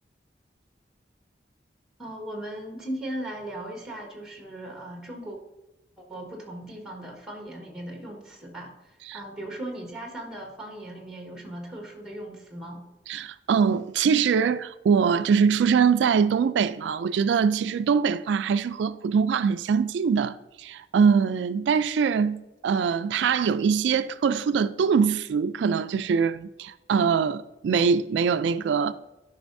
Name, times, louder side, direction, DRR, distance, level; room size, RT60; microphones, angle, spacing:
voice 1, 2.0-5.4 6.0-12.8, right 1 dB, 5° right, 1.4 m, -38 dB
voice 2, 13.1-28.9, right 6 dB, 85° right, 0.3 m, -23 dB
11.5 x 5.4 x 2.6 m
head